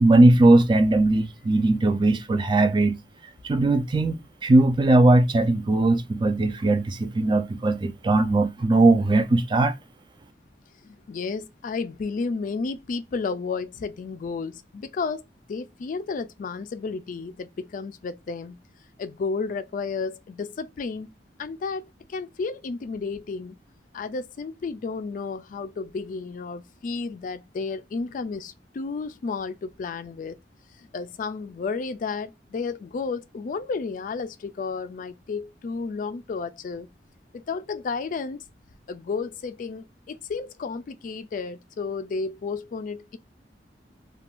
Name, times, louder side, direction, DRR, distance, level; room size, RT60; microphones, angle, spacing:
voice 1, 0.0-3.0 3.4-9.7, right 2 dB, 25° right, 0.4 m, -19 dB
voice 2, 10.8-15.2 15.5-18.6 19.0-21.1 21.4-23.6 23.9-30.4 30.8-36.9 37.3-38.4 38.9-43.2, left 4 dB, 50° left, 0.3 m, -32 dB
2.4 x 2.3 x 3.4 m
head